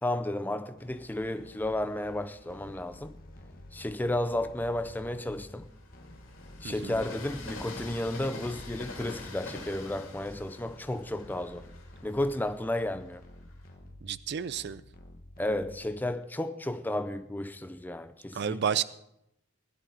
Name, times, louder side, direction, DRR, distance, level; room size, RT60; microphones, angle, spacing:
voice 1, 0.0-3.1 3.7-5.7 6.6-11.7 12.0-13.2 15.4-18.6, left 1 dB, 10° left, 0.4 m, -33 dB
Train, 0.8-2.5 3.1-13.7, left 2 dB, 70° left, 2.7 m, -46 dB
sound 1, 0.8-16.2, left 1 dB, 40° left, 1.1 m, -51 dB
voice 2, 6.6-7.0 14.0-14.8 18.3-18.8, right 8 dB, 50° right, 0.4 m, -31 dB
16.5 x 11.0 x 3.9 m
head